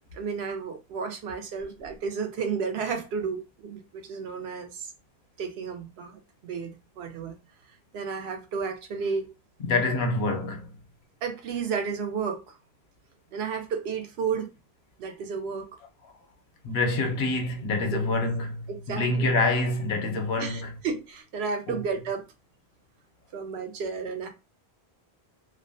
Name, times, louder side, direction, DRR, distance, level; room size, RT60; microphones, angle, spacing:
voice 1, 0.1-4.9 5.4-7.3 7.9-9.3 11.2-12.4 13.3-14.5 15.0-15.7 17.8-18.1 18.7-19.3 20.4-22.3 23.3-24.3, right 5 dB, 85° right, 0.8 m, -32 dB
voice 2, 9.6-10.7 16.6-20.8 21.7-21.8, left 2 dB, 85° left, 0.9 m, -26 dB
2.4 x 2.1 x 2.6 m
omnidirectional pair, 1.0 m